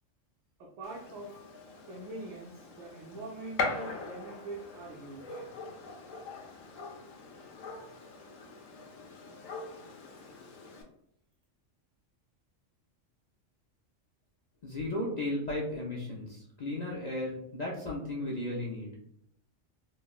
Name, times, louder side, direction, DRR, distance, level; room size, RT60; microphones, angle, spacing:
voice 1, 0.6-1.4 1.9-5.4, right 2 dB, 80° right, -3 dB, 1.0 m, -43 dB
Gunshot gunfire, 0.8-10.8, left 3 dB, 80° left, 1.0 m, -41 dB
voice 2, 14.6-18.9, left 1 dB, 55° left, -3 dB, 0.4 m, -35 dB
4.2 x 2.0 x 2.3 m, 0.73 s
omnidirectional pair, 1.3 m